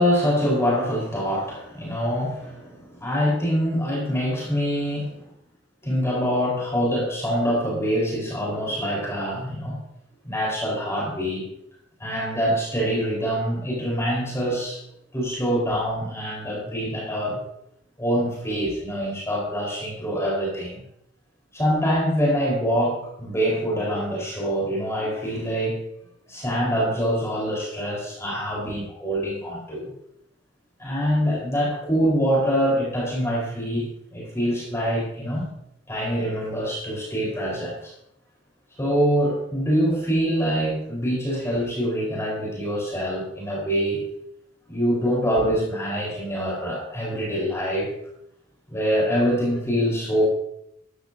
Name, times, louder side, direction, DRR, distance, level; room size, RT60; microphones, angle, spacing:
voice 1, 0.0-5.2 5.8-9.8 10.2-11.4 12.0-14.8 15.1-17.4 18.0-20.8 21.5-25.8 26.3-29.8 30.8-33.9 34.1-35.5 35.9-37.9 38.8-44.0 44.7-47.9 48.7-50.3, equal, 15° left, -4 dB, 4.3 m, -25 dB
14.0 x 13.0 x 2.7 m, 0.76 s
head